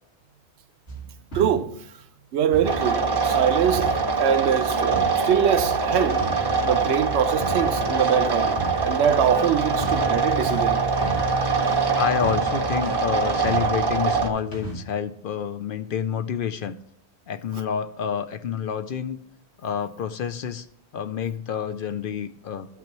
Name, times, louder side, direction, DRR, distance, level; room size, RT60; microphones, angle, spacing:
sound 1, 0.9-1.9 2.5-3.2 3.7-4.6 4.9-14.8, right 3 dB, 75° left, 2.7 m, -37 dB
voice 1, 1.3-1.7 2.3-6.2 6.6-8.5 8.8-10.8, right 8 dB, 85° right, 0.9 m, -23 dB
sound 2, 2.6-14.3, right 4 dB, 30° right, 0.5 m, -23 dB
voice 2, 12.0-16.8 17.3-19.2 19.6-20.7 20.9-22.7, left 8 dB, 60° left, 0.6 m, -28 dB
13.0 x 5.9 x 3.0 m
omnidirectional pair, 1.1 m